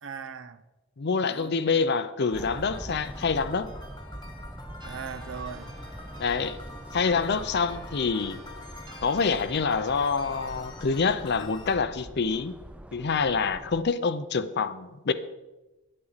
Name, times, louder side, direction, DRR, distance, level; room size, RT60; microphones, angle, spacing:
voice 1, 0.0-0.6 1.3-2.0 4.8-5.8, right 6 dB, 65° right, 0.6 m, -40 dB
voice 2, 1.0-3.7 6.2-6.6 6.9-8.4 9.0-12.6 12.9-15.1, left 5 dB, 55° left, 0.5 m, -26 dB
sound 1, 2.3-11.8, left 2 dB, 20° left, 1.2 m, -47 dB
sound 2, 2.3-13.8, right 1 dB, 5° right, 0.4 m, -43 dB
sound 3, 4.8-10.6, right 1 dB, 20° right, 1.3 m, -50 dB
11.0 x 8.7 x 4.1 m
head